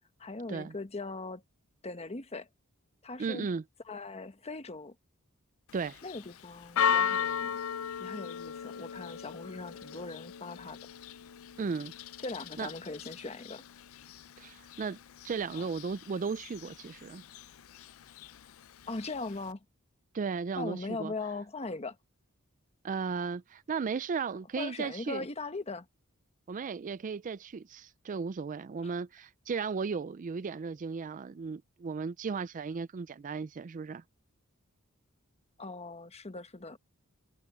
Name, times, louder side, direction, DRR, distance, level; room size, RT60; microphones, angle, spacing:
voice 1, 0.2-1.4 1.8-2.5 3.0-3.5 3.8-4.9 6.0-7.5 8.0-10.8 12.2-13.6 15.5-15.6 18.9-19.6 20.6-22.0 24.6-25.9 28.8-28.9 35.6-36.8, left 3 dB, 30° left, 1.2 m, -40 dB
voice 2, 3.2-3.6 5.7-6.0 11.6-11.9 12.6-12.7 14.4-15.0 15.2-17.2 20.1-21.1 22.8-25.2 26.5-34.0, right 5 dB, 35° right, 0.4 m, -35 dB
Church bell, 5.7-19.5, left 7 dB, 70° left, 0.5 m, -37 dB
head